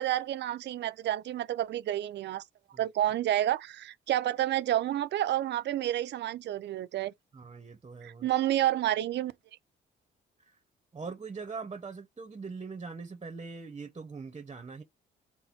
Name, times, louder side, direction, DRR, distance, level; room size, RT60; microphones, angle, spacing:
voice 1, 0.0-2.4 2.8-7.1 8.0-9.3, right 13 dB, 60° right, 0.5 m, -29 dB
voice 2, 7.3-8.3 10.9-14.8, right 4 dB, 25° right, 0.8 m, -41 dB
4.0 x 2.2 x 4.3 m
cardioid pair, 90°, 20 cm